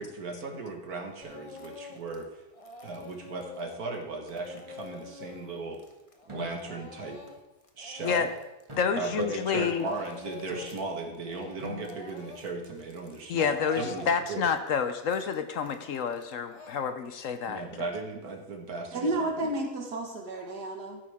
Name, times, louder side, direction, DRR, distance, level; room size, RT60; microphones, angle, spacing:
voice 1, 0.0-2.4 2.8-5.8 6.3-7.2 7.8-8.3 9.0-14.5 17.4-19.5, right 3 dB, 70° right, 3 dB, 2.0 m, -37 dB
Speech / Crying sobbing, 1.2-2.2 2.5-9.2 9.4-10.9 11.1-17.4, left 4 dB, 25° left, 0.9 m, -47 dB
sound 1, 6.3-6.9 8.7-9.4 10.5-11.1 11.6-12.4 13.8-14.1 15.6-16.2, left 2 dB, 20° right, 2.4 m, -46 dB
voice 2, 8.8-9.8 13.3-17.6, left 6 dB, 65° left, 9 dB, 1.0 m, -29 dB
voice 3, 18.9-21.0, right 2 dB, 90° right, 2 dB, 2.3 m, -31 dB
14.0 x 8.6 x 3.6 m, 0.97 s
omnidirectional pair, 1.7 m